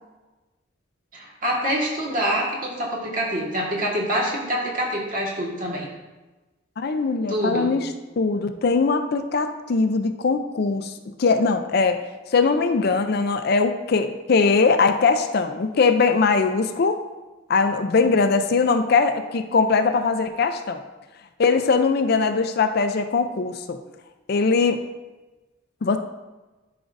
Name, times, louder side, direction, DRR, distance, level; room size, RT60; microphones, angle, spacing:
voice 1, 1.1-5.9 7.3-7.7 18.0-18.1, equal, 45° right, -2 dB, 1.6 m, -26 dB
voice 2, 6.8-7.9 8.2-10.9 11.2-12.0 12.3-17.0 17.5-20.8 21.4-23.8 24.3-24.8 25.8-26.0, left 4 dB, 55° left, 8 dB, 0.4 m, -21 dB
11.0 x 5.1 x 2.6 m, 1.2 s
head